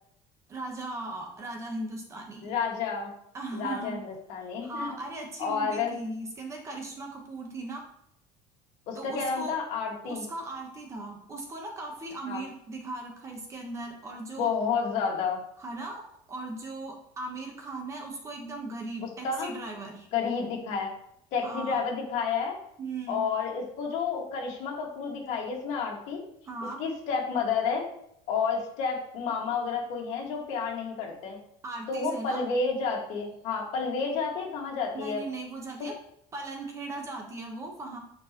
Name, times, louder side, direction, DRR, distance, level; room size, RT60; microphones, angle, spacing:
voice 1, 0.5-2.5 3.3-4.0 4.4-7.9 8.9-9.5 10.0-14.5 15.6-20.1 21.4-21.8 22.8-23.2 26.5-26.8 31.6-32.4 34.9-36.0 36.3-38.0, right 2 dB, 20° right, 2 dB, 1.2 m, -38 dB
voice 2, 2.4-3.1 3.5-4.9 5.4-5.9 8.9-10.2 12.3-12.4 14.4-15.4 19.2-19.6 20.1-20.9 21.3-22.6 23.1-26.2 26.8-27.9 28.3-31.4 31.9-35.2, left 5 dB, 60° left, 0 dB, 2.0 m, -30 dB
9.2 x 4.6 x 3.0 m, 0.73 s
cardioid pair, 165°, 13 cm